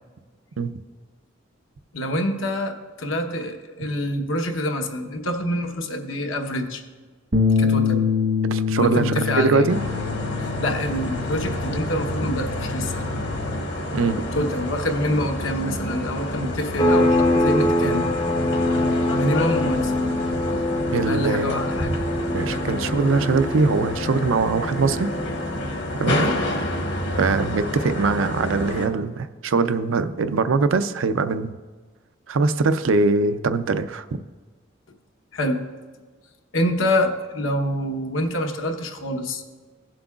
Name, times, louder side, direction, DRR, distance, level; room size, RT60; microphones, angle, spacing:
voice 1, 1.9-6.8 7.6-8.1 8.8-9.6 10.4-13.0 14.3-18.1 19.2-20.1 21.1-21.9 26.2-26.4 35.3-35.6 36.5-39.4, left 1 dB, 85° left, 4 dB, 1.0 m, -26 dB
Bass guitar, 7.3-13.6, left 6 dB, 70° right, 1.1 m, -25 dB
voice 2, 8.4-9.8 13.9-14.2 20.9-21.6 22.3-25.1 26.0-26.2 27.2-31.5 32.3-34.0, right 4 dB, 85° right, 10 dB, 0.5 m, -22 dB
sound 1, 9.7-28.9, left 1 dB, 60° left, 1.2 m, -28 dB
sound 2, 16.8-27.1, left 1 dB, 20° left, 0.5 m, -25 dB
16.5 x 7.6 x 2.4 m, 1.4 s
head